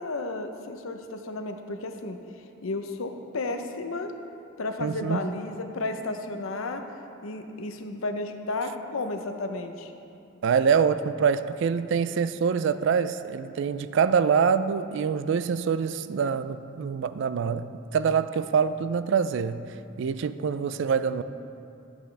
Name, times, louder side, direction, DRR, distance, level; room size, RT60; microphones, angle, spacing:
voice 1, 0.0-2.2 2.6-4.1 4.6-6.8 7.2-9.9, left 2 dB, 80° left, 6 dB, 0.7 m, -33 dB
voice 2, 4.8-5.3 10.4-19.7 20.0-21.2, right 6 dB, 60° right, 13 dB, 0.3 m, -25 dB
12.5 x 8.0 x 3.3 m, 2.7 s
head